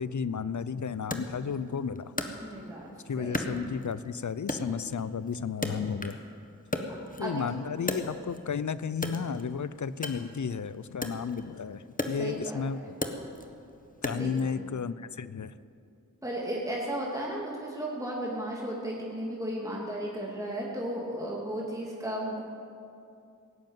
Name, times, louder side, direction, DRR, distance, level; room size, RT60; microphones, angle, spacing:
voice 1, 0.0-2.1 3.1-6.2 7.2-12.8 14.0-15.5, left 6 dB, 65° left, 16 dB, 0.6 m, -33 dB
Wood, 1.1-2.9 3.3-4.1 4.5-6.3 6.6-8.5 8.9-14.5, left 1 dB, 25° left, 1.4 m, -36 dB
voice 2, 2.4-3.6 7.2-7.5 12.2-12.6 14.1-14.6 16.2-22.4, right 1 dB, 10° right, -4 dB, 2.8 m, -35 dB
17.5 x 7.7 x 9.1 m, 2.5 s
wide cardioid pair, 40°, 32 cm